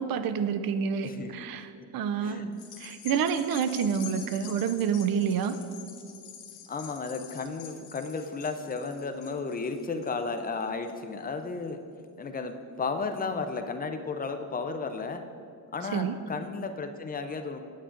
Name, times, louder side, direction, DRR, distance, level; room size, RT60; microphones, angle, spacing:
voice 1, 0.0-2.4 2.8-5.6 15.9-16.2, right 7 dB, 55° right, 11 dB, 0.5 m, -28 dB
voice 2, 2.2-2.5 6.7-11.8 12.2-15.3 15.7-17.6, left 4 dB, 20° left, 6 dB, 0.4 m, -34 dB
sound 1, 2.5-11.2 11.7-11.8, left 9 dB, 80° left, 0.9 m, -46 dB
9.3 x 8.4 x 2.5 m, 2.4 s
cardioid pair, 110°, 44 cm